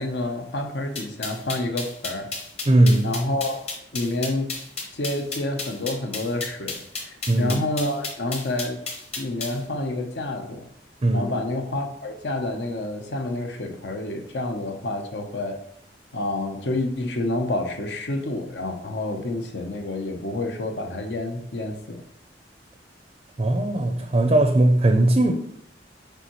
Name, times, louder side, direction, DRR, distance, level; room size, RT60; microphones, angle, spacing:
voice 1, 0.0-2.3 3.0-3.6 3.9-4.5 4.9-8.8 9.2-10.7 11.1-15.6 16.1-22.0, left 2 dB, 70° left, 5 dB, 0.8 m, -28 dB
sound 1, 1.0-9.6, left 4 dB, 35° left, 1.2 m, -32 dB
voice 2, 2.7-3.1 7.3-7.6 11.0-11.3 23.4-25.3, right 1 dB, 30° right, 4 dB, 0.5 m, -19 dB
6.8 x 4.5 x 3.0 m, 0.74 s
head